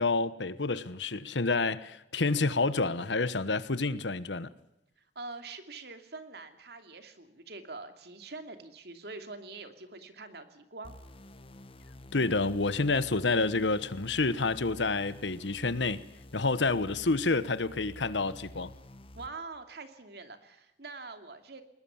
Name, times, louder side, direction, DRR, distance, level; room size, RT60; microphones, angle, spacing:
voice 1, 0.0-4.5 12.1-16.0 16.3-18.7, left 3 dB, 85° left, 1.2 m, -28 dB
voice 2, 5.0-11.0 16.5-17.0 19.2-21.6, right 3 dB, 65° right, 2.7 m, -45 dB
sound 1, 10.8-19.3, left 1 dB, 30° left, 1.4 m, -50 dB
21.0 x 20.5 x 7.2 m
head